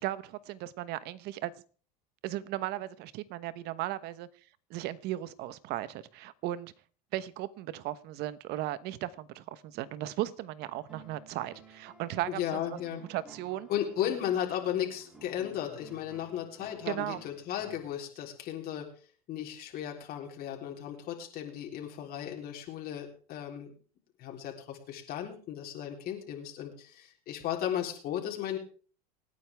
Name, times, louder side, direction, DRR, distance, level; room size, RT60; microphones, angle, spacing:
voice 1, 0.0-1.5 2.2-4.3 4.7-6.7 7.1-12.8 13.1-13.7 16.9-17.2, right 14 dB, 60° right, 15 dB, 1.1 m, -36 dB
sound 1, 10.6-17.8, right 3 dB, 5° right, 6.7 m, -55 dB
voice 2, 12.3-13.0 13.7-18.9 19.3-23.7 24.2-28.6, left 10 dB, 50° left, 0 dB, 3.7 m, -35 dB
26.0 x 9.4 x 3.5 m, 0.41 s
supercardioid pair, 105°, 19 cm